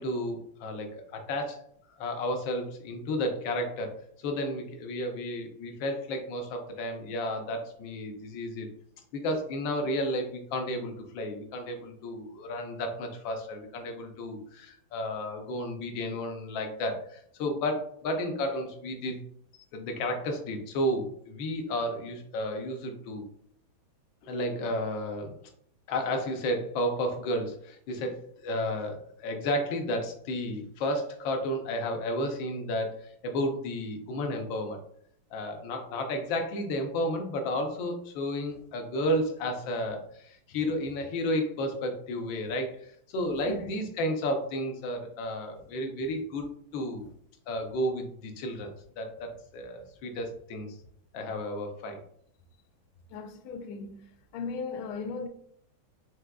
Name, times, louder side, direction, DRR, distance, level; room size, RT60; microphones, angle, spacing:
voice 1, 0.0-1.7 2.0-4.0 4.2-8.7 9.1-19.2 19.7-23.2 24.2-25.4 25.9-34.8 35.3-46.5 46.7-47.0 47.5-50.7 51.1-52.0, left 1 dB, 70° left, 1.4 m, -32 dB
voice 2, 53.1-54.0 54.3-55.3, left 4 dB, 90° left, 1.4 m, -37 dB
4.8 x 3.6 x 2.3 m
omnidirectional pair, 2.2 m